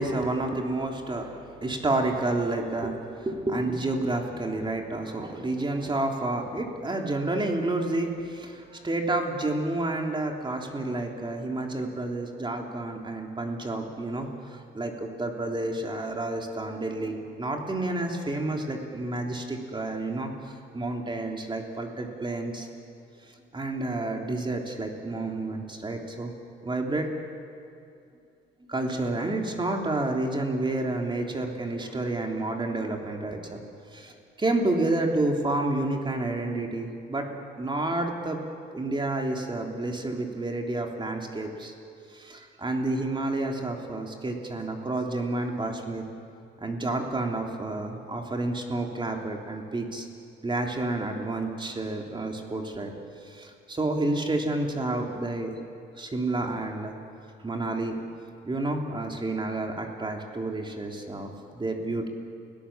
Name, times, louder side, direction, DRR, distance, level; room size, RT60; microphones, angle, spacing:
voice 1, 0.0-22.7 23.3-26.3 26.6-27.1 28.6-33.6 33.9-37.3 37.6-38.4 38.7-41.7 42.1-46.0 46.6-50.1 50.4-52.9 53.2-55.5 56.0-56.9 57.4-58.0 58.4-62.1, right 2 dB, 25° right, 2 dB, 3.4 m, -30 dB
30.0 x 17.5 x 7.5 m, 2.5 s
cardioid pair, 90°, 20 cm